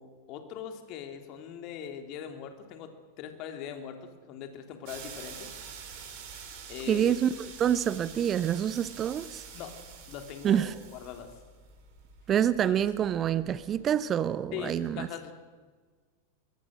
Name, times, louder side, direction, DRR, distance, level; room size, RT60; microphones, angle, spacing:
voice 1, 0.0-5.6 6.7-7.1 9.5-9.8 10.1-11.3 12.7-12.8 14.5-15.3, left 9 dB, 40° left, 6 dB, 3.1 m, -41 dB
sound 1, 4.9-13.8, right 6 dB, 45° right, 5.7 m, -47 dB
voice 2, 6.9-7.3 7.6-9.4 10.4-10.7 12.3-15.1, right 9 dB, 25° right, 16 dB, 0.8 m, -27 dB
23.5 x 23.5 x 6.5 m, 1.5 s
figure-of-eight pair, 90°, 0 cm